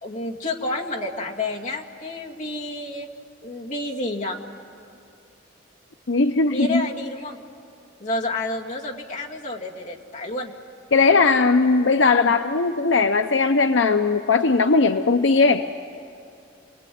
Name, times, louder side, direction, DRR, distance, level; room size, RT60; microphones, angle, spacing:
voice 1, 0.0-3.1 3.4-4.4 6.5-7.4 8.0-10.5, left 2 dB, 40° left, -1 dB, 2.3 m, -30 dB
voice 2, 6.1-6.8 10.9-15.6, left 4 dB, 75° left, 8 dB, 0.7 m, -18 dB
29.5 x 20.0 x 9.4 m, 2.5 s
head